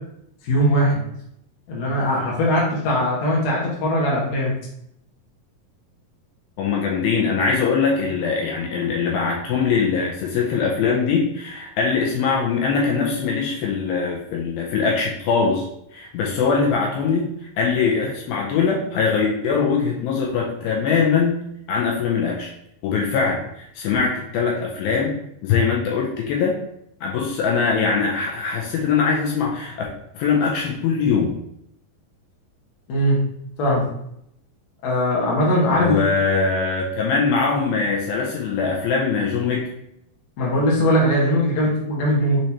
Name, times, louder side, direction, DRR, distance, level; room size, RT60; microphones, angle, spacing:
voice 1, 0.4-1.0 1.7-4.5 32.9-33.2 33.6-33.8 34.8-35.9 40.4-42.4, equal, 60° left, -4 dB, 2.1 m, -20 dB
voice 2, 6.6-15.7 15.9-17.3 17.6-22.5 22.8-25.1 25.4-26.5 27.0-29.9 30.1-31.3 35.7-39.7, left 5 dB, 80° left, -2 dB, 2.4 m, -22 dB
6.4 x 3.0 x 2.8 m, 0.75 s
omnidirectional pair, 4.4 m